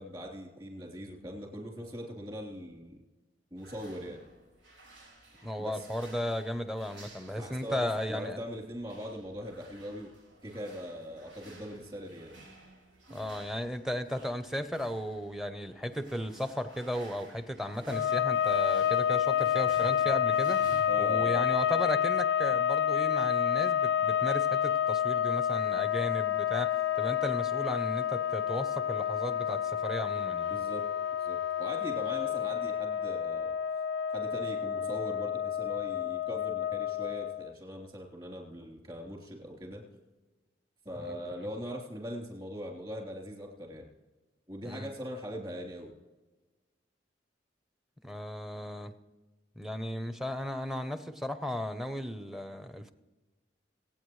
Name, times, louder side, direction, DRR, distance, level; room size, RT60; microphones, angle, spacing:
voice 1, 0.0-3.0 3.5-4.2 5.6-5.9 7.4-10.1 10.4-12.4 20.9-21.5 30.5-30.9 31.2-33.6 34.1-39.8 40.8-43.9 44.5-45.9, equal, 30° right, -1 dB, 3.4 m, -41 dB
sound 1, 3.6-20.8, right 1 dB, 85° right, 4.4 m, -53 dB
voice 2, 5.4-8.4 13.1-20.6 21.0-30.5 41.0-41.2 44.6-44.9 48.0-48.9 49.6-52.9, left 1 dB, ahead, 10 dB, 0.7 m, -35 dB
sound 2, 17.9-37.5, left 9 dB, 75° left, 0.4 m, -29 dB
26.5 x 8.9 x 3.2 m, 1.2 s
head